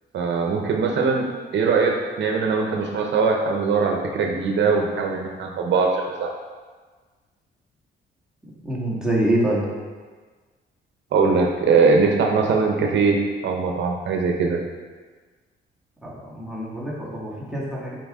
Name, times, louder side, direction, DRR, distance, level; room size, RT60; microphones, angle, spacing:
voice 1, 0.1-1.3 1.5-6.3 11.1-14.6, right 4 dB, 65° right, 2 dB, 0.8 m, -21 dB
voice 2, 8.4-9.7 16.0-18.0, right 1 dB, 5° right, -5 dB, 1.8 m, -25 dB
7.8 x 4.5 x 3.6 m, 1.4 s
cardioid pair, 90°, 20 cm